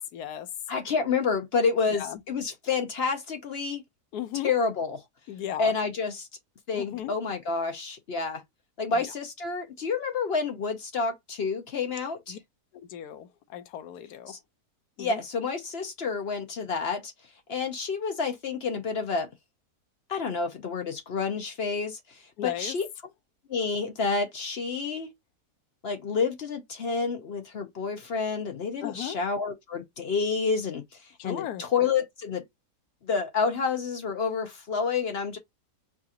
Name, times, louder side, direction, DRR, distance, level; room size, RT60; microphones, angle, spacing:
voice 1, 0.1-0.5 1.9-2.2 4.1-4.5 5.3-5.7 6.7-7.1 8.9-9.1 12.3-12.4 12.7-14.4 15.0-15.2 22.4-22.8 28.8-29.2 31.2-31.7, left 11 dB, 75° left, 1.2 m, -36 dB
voice 2, 0.7-3.8 4.4-5.0 5.6-6.3 6.7-8.4 8.8-12.4 14.3-14.4 15.0-17.1 17.5-19.3 20.1-22.9 23.5-25.1 25.8-30.8 31.2-32.4 33.0-35.4, left 5 dB, 55° left, 0.7 m, -29 dB
4.8 x 2.4 x 2.8 m
omnidirectional pair, 1.7 m